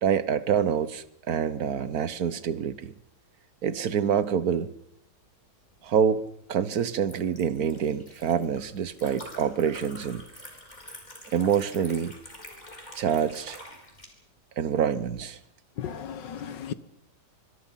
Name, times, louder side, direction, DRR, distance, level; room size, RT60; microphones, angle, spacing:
voice 1, 0.0-2.9 3.6-4.7 5.8-6.2 6.5-10.2 11.3-12.1 12.9-13.6 14.6-15.4, right 8 dB, 55° right, 1.4 m, -26 dB
Liquid, 5.7-14.1, left 1 dB, 20° left, 4.6 m, -47 dB
voice 2, 15.8-16.7, left 8 dB, 65° left, 1.7 m, -35 dB
24.5 x 24.5 x 5.8 m
omnidirectional pair, 2.2 m